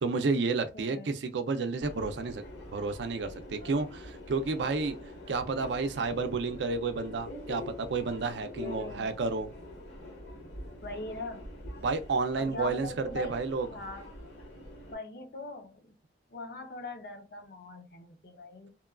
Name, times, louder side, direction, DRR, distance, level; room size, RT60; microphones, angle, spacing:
voice 1, 0.0-2.4 2.7-5.0 5.3-9.5 11.8-13.7, right 4 dB, 85° right, 0.4 m, -31 dB
voice 2, 0.7-1.1 8.6-9.1 10.8-11.5 12.3-13.3 13.7-14.1 14.9-15.9 16.3-18.7, left 2 dB, 55° left, 0.6 m, -41 dB
Subway metro underground, 1.8-14.9, left 1 dB, 80° left, 1.5 m, -45 dB
2.9 x 2.2 x 2.3 m
head